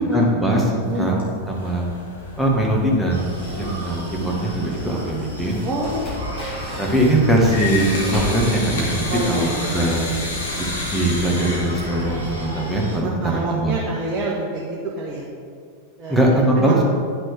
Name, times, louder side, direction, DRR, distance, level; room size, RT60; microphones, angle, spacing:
voice 1, 0.1-1.9 2.4-5.6 6.8-10.1 10.6-13.1 13.5-13.8 16.1-16.8, right 1 dB, ahead, -2 dB, 1.5 m, -21 dB
sound 1, 0.8-12.3, left 2 dB, 70° left, 1.7 m, -34 dB
sound 2, 1.9-9.0, equal, 20° left, 2.1 m, -36 dB
Screaming, 3.1-13.0, left 1 dB, 85° left, 1.6 m, -32 dB
voice 2, 5.6-6.0 9.1-9.9 13.0-15.2 16.0-16.8, right 1 dB, 25° right, -5 dB, 1.2 m, -27 dB
9.8 x 6.0 x 3.4 m, 2.1 s
figure-of-eight pair, 90°, 0 cm